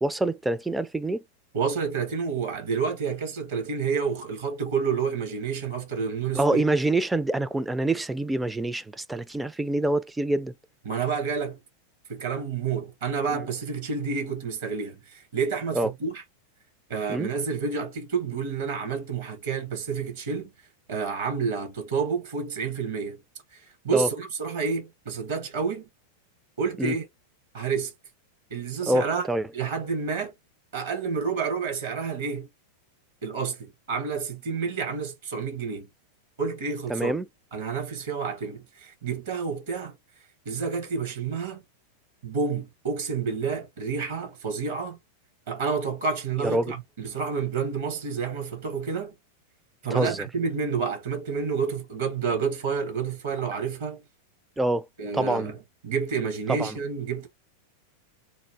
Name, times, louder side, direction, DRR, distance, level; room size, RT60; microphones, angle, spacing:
voice 1, 0.0-1.2 6.3-10.5 15.8-15.9 17.1-17.3 23.9-24.1 26.8-27.0 28.9-29.5 36.9-37.3 46.4-46.7 49.9-50.3 54.6-54.9 55.1-55.5 56.5-56.8, right 1 dB, 5° right, 0.3 m, -26 dB
voice 2, 1.5-6.6 10.8-11.6 12.1-16.2 16.9-20.5 20.9-23.2 23.5-25.8 26.6-27.1 27.5-27.9 28.5-29.3 29.5-30.3 30.7-32.5 33.2-35.9 36.4-37.2 37.5-40.0 40.4-41.6 42.2-45.0 45.5-49.1 49.8-54.0 55.0-55.6 55.8-57.3, right 5 dB, 60° right, 1.2 m, -29 dB
3.0 x 2.4 x 3.1 m
figure-of-eight pair, 90°, 0 cm